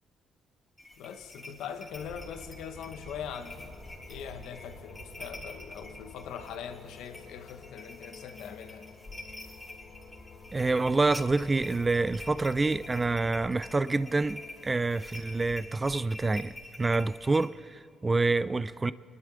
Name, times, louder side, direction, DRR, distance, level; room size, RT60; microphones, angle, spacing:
sound 1, 0.8-17.5, left 2 dB, 10° left, 3.4 m, -48 dB
voice 1, 1.0-3.8 4.1-8.9, left 8 dB, 90° left, 0.9 m, -42 dB
sound 2, 1.6-17.2, left 5 dB, 55° left, 1.2 m, -53 dB
sound 3, 1.9-13.4, right 1 dB, 5° right, 3.2 m, -51 dB
voice 2, 10.5-18.9, right 3 dB, 25° right, 0.4 m, -27 dB
24.0 x 11.5 x 3.8 m
cardioid pair, 90°, 0 cm